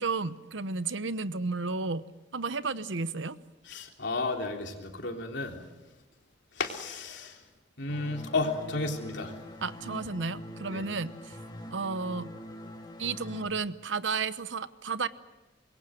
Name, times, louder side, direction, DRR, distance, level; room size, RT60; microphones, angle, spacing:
voice 1, 0.0-2.1 2.3-3.4 9.6-11.3 11.7-12.3 13.0-15.1, right 4 dB, 80° right, 14 dB, 0.9 m, -32 dB
voice 2, 3.7-5.6 6.6-7.3 7.8-9.3 10.7-10.8, left 3 dB, 70° left, 2 dB, 3.5 m, -32 dB
sound 1, 7.9-13.5, left 1 dB, 25° left, 2.2 m, -44 dB
26.0 x 22.0 x 7.8 m, 1.1 s
head